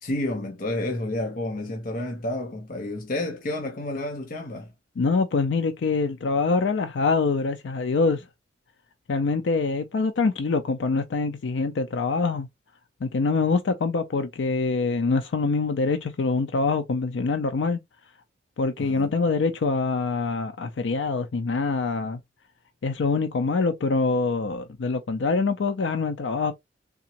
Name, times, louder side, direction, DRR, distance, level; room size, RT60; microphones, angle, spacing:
voice 1, 0.0-4.7 18.8-19.1, left 1 dB, 50° left, 0.8 m, -30 dB
voice 2, 5.0-8.2 9.1-12.5 13.0-17.8 18.6-22.2 22.8-26.5, left 4 dB, 85° left, 0.4 m, -25 dB
3.5 x 2.9 x 2.8 m
head